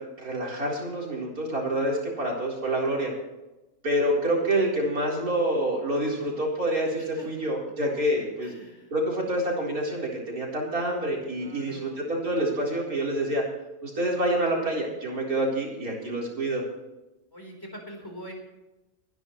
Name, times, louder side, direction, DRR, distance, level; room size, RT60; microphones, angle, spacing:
voice 1, 0.0-3.1 3.8-8.5 8.9-13.4 13.8-16.6, right 1 dB, 85° right, -3 dB, 4.7 m, -27 dB
voice 2, 7.0-7.5 8.4-8.9 11.4-12.0 17.3-18.3, equal, 15° left, 1 dB, 4.1 m, -44 dB
29.5 x 11.0 x 3.2 m, 1.0 s
omnidirectional pair, 1.5 m